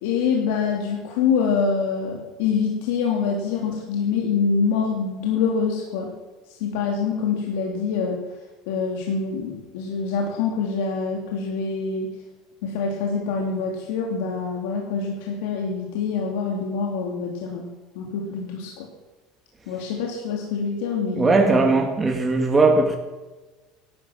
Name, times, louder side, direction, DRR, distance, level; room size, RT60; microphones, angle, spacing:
voice 1, 0.0-6.1 6.6-8.2 8.7-12.1 12.6-17.7 17.9-18.9 19.7-21.6, left 5 dB, 85° left, 2.7 m, -25 dB
voice 2, 21.2-23.0, right 3 dB, 15° right, 1.9 m, -18 dB
17.0 x 12.5 x 6.3 m
cardioid pair, 135°, 0 cm